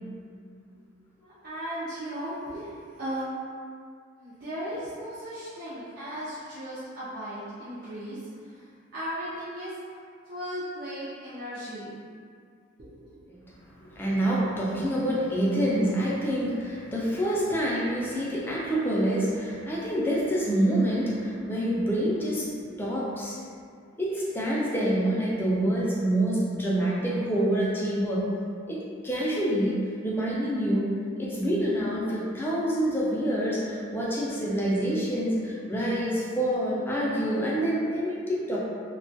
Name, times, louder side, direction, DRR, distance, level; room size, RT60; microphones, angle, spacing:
voice 1, 1.2-2.7 3.0-3.3 4.2-8.2 8.9-9.7 10.3-11.9 12.8-13.0, equal, 50° right, -12 dB, 0.5 m, -36 dB
voice 2, 13.7-22.5 22.8-23.4 24.0-28.3 28.7-30.9 31.2-38.6, right 1 dB, 10° left, -6 dB, 0.3 m, -27 dB
2.2 x 2.2 x 2.6 m, 2.2 s
head